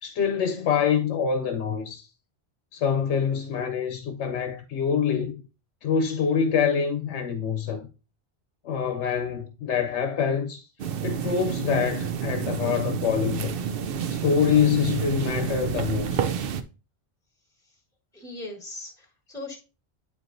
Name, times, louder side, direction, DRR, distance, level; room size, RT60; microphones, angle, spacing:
voice 1, 0.0-2.0 2.7-5.4 5.8-7.9 8.6-10.6 11.0-13.6 14.1-16.2, left 7 dB, 85° left, 1.0 m, -25 dB
sound 1, 10.8-16.6, right 7 dB, 65° right, 0.7 m, -29 dB
voice 2, 18.1-19.6, left 2 dB, 5° left, 1.4 m, -39 dB
9.1 x 4.6 x 2.6 m
omnidirectional pair, 1.1 m